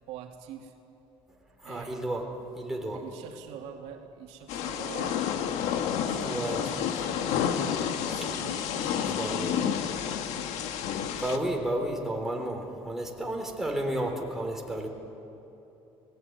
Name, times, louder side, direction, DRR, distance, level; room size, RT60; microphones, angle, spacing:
voice 1, 0.1-0.7 1.6-2.0 2.9-5.2 6.1-10.2, right 9 dB, 90° right, 2 dB, 2.7 m, -45 dB
voice 2, 1.6-2.3 2.6-3.0 6.0-6.6 9.0-9.6 11.2-14.9, right 1 dB, 5° right, 0 dB, 3.5 m, -32 dB
Thunder / Rain, 4.5-11.4, left 8 dB, 90° left, 1.7 m, -30 dB
30.0 x 19.0 x 9.5 m, 3.0 s
cardioid pair, 145°, 11 cm